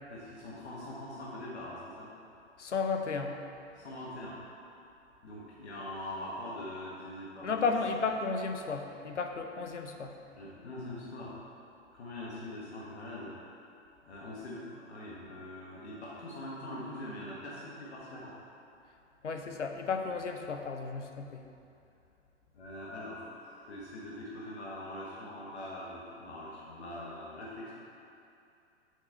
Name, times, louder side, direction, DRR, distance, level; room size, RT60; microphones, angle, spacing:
voice 1, 0.1-2.1 3.7-4.4 5.2-7.7 10.4-11.4 11.9-13.3 14.0-18.3 22.5-27.7, left 1 dB, 65° left, -6 dB, 1.4 m, -43 dB
voice 2, 2.6-3.4 7.4-10.1 19.2-21.4, left 4 dB, 85° left, 5 dB, 0.7 m, -33 dB
6.5 x 5.2 x 4.4 m, 2.6 s
figure-of-eight pair, 105°, 35 cm